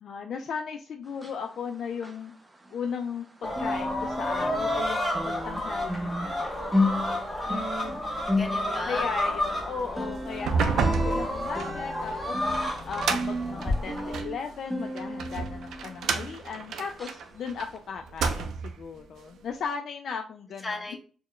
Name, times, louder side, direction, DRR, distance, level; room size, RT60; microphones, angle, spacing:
voice 1, 0.0-2.3 2.7-6.5 8.8-12.4 12.9-20.8, left 6 dB, 60° left, 4 dB, 0.4 m, -36 dB
sound 1, 1.1-3.2 3.5-16.6 17.0-17.2 17.7-17.8, left 1 dB, 15° right, 0.5 m, -34 dB
sound 2, 3.4-14.2, left 1 dB, 10° left, 0.9 m, -31 dB
voice 2, 7.1-7.5 8.4-9.1 20.6-21.0, left 2 dB, 25° left, -3 dB, 1.2 m, -36 dB
sound 3, 10.3-14.4 15.0-17.7 18.0-18.8, right 5 dB, 75° right, 0.5 m, -30 dB
4.4 x 2.2 x 3.0 m, 0.39 s
cardioid pair, 135°, 0 cm